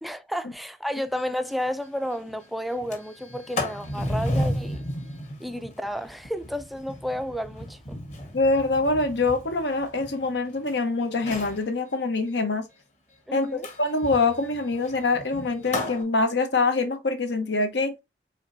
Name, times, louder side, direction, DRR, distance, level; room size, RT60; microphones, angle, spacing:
voice 1, 0.0-4.8 5.4-8.0 13.3-13.7, equal, ahead, 0.4 m, -32 dB
Sliding door, 1.2-1.3 1.6-1.7 2.0-2.3 2.7-10.7 11.1-11.6 13.6-16.0, left 1 dB, 40° left, 1.5 m, -33 dB
voice 2, 8.3-12.7 13.3-17.9, left 3 dB, 75° left, 1.1 m, -24 dB
5.0 x 3.9 x 2.7 m
head